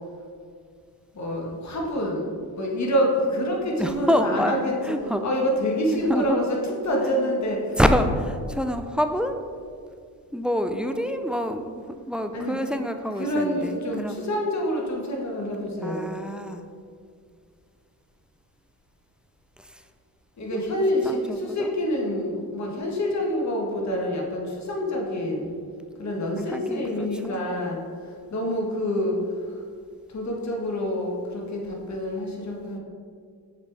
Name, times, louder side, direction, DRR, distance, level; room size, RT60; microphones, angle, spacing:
voice 1, 1.1-2.3 2.6-4.7 5.2-6.4 6.8-7.8 12.3-12.6 13.2-16.1 20.4-25.5 26.0-29.6 30.1-32.8, equal, 45° left, -1 dB, 1.5 m, -27 dB
voice 2, 3.7-4.5 4.8-5.2 6.1-6.4 7.7-9.4 10.3-14.2 15.8-16.6 19.6-19.9 20.5-20.6 21.0-21.7 26.5-27.4, equal, 5° right, 7 dB, 0.3 m, -27 dB
6.6 x 4.8 x 3.5 m, 2.2 s
supercardioid pair, 65°, 38 cm